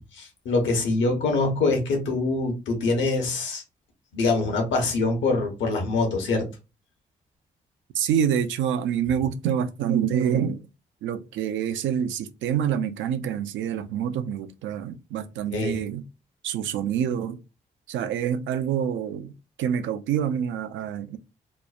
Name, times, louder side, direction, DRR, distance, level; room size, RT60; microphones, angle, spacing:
voice 1, 0.1-3.6 4.1-6.5 15.5-15.8, left 3 dB, 70° left, 0.9 m, -24 dB
voice 2, 7.9-10.7 11.0-16.0 16.4-17.4 17.9-19.3 19.6-21.2, right 9 dB, 70° right, 0.4 m, -26 dB
2.9 x 2.1 x 2.4 m
hypercardioid pair, 40°, 20 cm